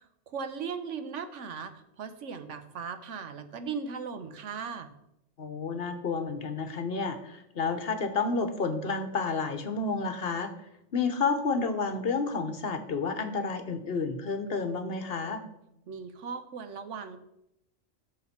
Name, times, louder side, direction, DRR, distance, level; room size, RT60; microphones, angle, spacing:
voice 1, 0.3-4.9 15.9-17.2, right 6 dB, 75° right, 10 dB, 1.2 m, -38 dB
voice 2, 5.4-10.5 10.9-15.4, left 4 dB, 55° left, 8 dB, 1.1 m, -30 dB
12.5 x 6.6 x 4.3 m, 0.83 s
omnidirectional pair, 1.3 m